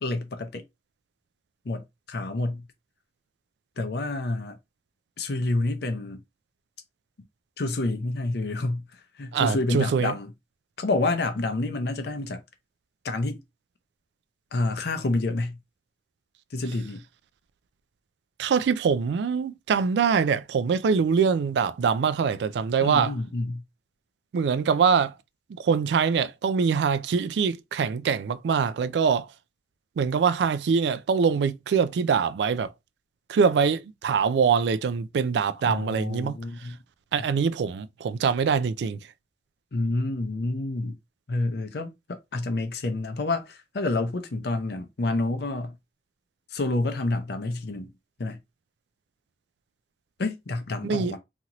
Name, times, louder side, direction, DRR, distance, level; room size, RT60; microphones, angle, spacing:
voice 1, 0.0-0.6 1.6-2.7 3.8-4.6 5.2-6.2 7.6-8.8 9.2-10.3 10.8-12.4 13.0-13.4 14.5-15.6 16.5-17.0 22.8-23.6 35.7-36.8 39.7-41.0 41.3-45.8 46.5-47.9 48.2-48.4 50.2-51.2, left 2 dB, 65° left, 0.6 m, -28 dB
voice 2, 9.3-10.1 18.4-23.1 24.3-25.1 25.6-29.3 30.0-32.7 33.3-36.3 37.1-39.0 50.8-51.1, right 6 dB, 70° right, 0.3 m, -23 dB
2.8 x 2.5 x 2.9 m
head